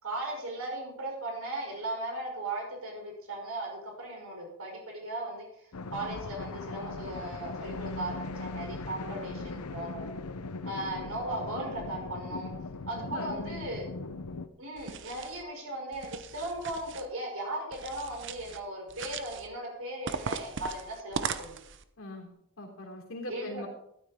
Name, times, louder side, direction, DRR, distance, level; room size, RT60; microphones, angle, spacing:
voice 1, 0.0-5.5 5.9-10.1 10.7-12.5 12.9-13.9 14.6-21.5 23.3-23.7, right 1 dB, 75° right, 0 dB, 5.5 m, -37 dB
sound 1, 5.7-14.5, left 3 dB, 90° left, 0.8 m, -39 dB
voice 2, 9.0-9.5 13.0-13.8 22.0-22.3 22.6-23.7, left 1 dB, 65° left, 0 dB, 3.6 m, -41 dB
sound 2, 14.8-15.4 15.9-17.1 17.7-18.6 18.9-19.5 20.1-21.8, right 5 dB, 55° right, 0.7 m, -38 dB
14.0 x 12.5 x 3.7 m, 0.74 s
head